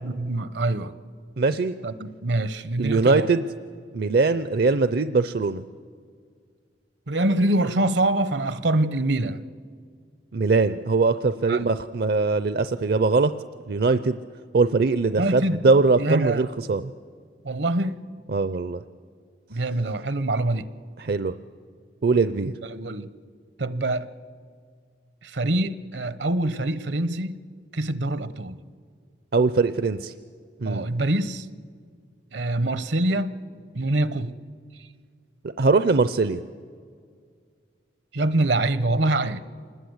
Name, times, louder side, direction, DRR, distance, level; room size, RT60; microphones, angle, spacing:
voice 1, 0.0-0.9 1.8-3.3 7.1-9.4 11.5-11.7 15.2-15.6 16.0-16.4 17.4-18.0 19.5-20.7 22.6-23.1 23.6-24.1 25.2-27.4 27.7-28.6 30.6-31.5 32.3-33.3 33.7-34.3 38.1-39.4, right 2 dB, 75° right, 14 dB, 0.9 m, -25 dB
voice 2, 1.4-1.7 2.8-3.4 3.9-5.6 10.3-13.3 13.7-14.2 14.5-16.8 18.3-18.8 21.0-21.3 22.0-22.5 29.3-30.1 30.6-30.9 35.6-36.4, right 3 dB, 60° right, 12 dB, 0.5 m, -21 dB
27.0 x 20.0 x 8.0 m, 2.1 s
head